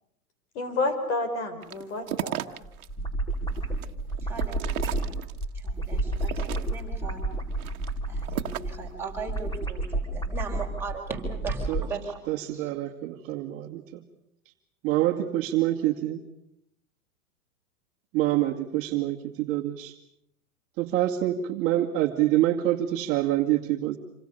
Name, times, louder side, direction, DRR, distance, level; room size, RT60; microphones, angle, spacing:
voice 1, 0.5-2.6, left 2 dB, 50° left, 8 dB, 5.9 m, -30 dB
sound 1, 1.6-2.9 3.3-5.6 6.1-7.0 7.5-8.8, right 12 dB, 70° right, 1.6 m, -35 dB
sound 2, 2.6-11.9, right 2 dB, 10° left, 4.4 m, -31 dB
voice 2, 4.2-4.8 5.5-7.3 8.1-12.2 12.5-12.7, right 4 dB, 5° right, -2 dB, 5.2 m, -38 dB
voice 3, 12.3-14.0 14.8-16.2 18.1-20.0 20.8-24.0, right 14 dB, 30° right, 0 dB, 2.2 m, -26 dB
27.5 x 26.0 x 6.8 m, 0.75 s
hypercardioid pair, 145°, 44 cm